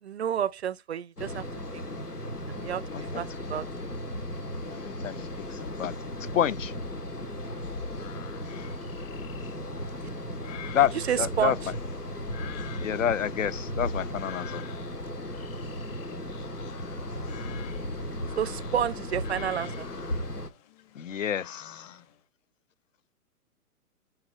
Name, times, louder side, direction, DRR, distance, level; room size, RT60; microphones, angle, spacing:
voice 1, 0.0-1.5 1.7-1.9 2.5-3.7 10.9-11.7 18.4-19.9, right 9 dB, 45° right, 0.5 m, -30 dB
sound 1, 1.2-20.5, left 1 dB, 90° left, 2.0 m, -36 dB
voice 2, 4.7-5.9 6.3-6.7 8.5-8.6 10.7-10.9 11.2-11.6 12.8-14.6 21.0-21.9, left 10 dB, 55° left, 0.8 m, -28 dB
sound 2, 7.9-22.2, left 10 dB, 25° left, 1.4 m, -48 dB
9.8 x 4.5 x 4.8 m
figure-of-eight pair, 120°, 45 cm